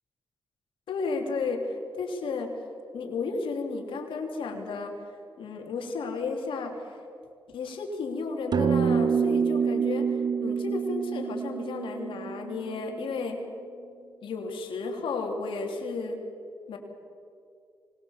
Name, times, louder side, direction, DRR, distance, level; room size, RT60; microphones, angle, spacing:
voice 1, 0.9-2.5 2.9-4.9 5.4-7.0 7.5-13.4 14.2-16.2 16.7-16.8, left 4 dB, 90° left, 2 dB, 3.3 m, -33 dB
sound 1, 8.5-13.2, right 6 dB, 55° right, 0.5 m, -27 dB
25.0 x 21.0 x 7.4 m, 2.5 s
cardioid pair, 60°, 9 cm